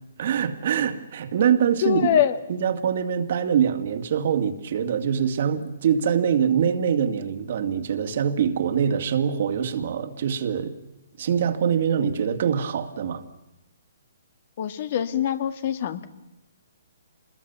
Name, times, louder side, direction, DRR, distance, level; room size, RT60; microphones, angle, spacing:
voice 1, 0.2-2.2 2.5-10.7 11.2-13.2, right 8 dB, 55° right, 2.3 m, -24 dB
voice 2, 1.8-2.4 14.6-16.1, left 10 dB, 50° left, 2.0 m, -23 dB
27.0 x 21.0 x 7.0 m
hypercardioid pair, 140°, 0 cm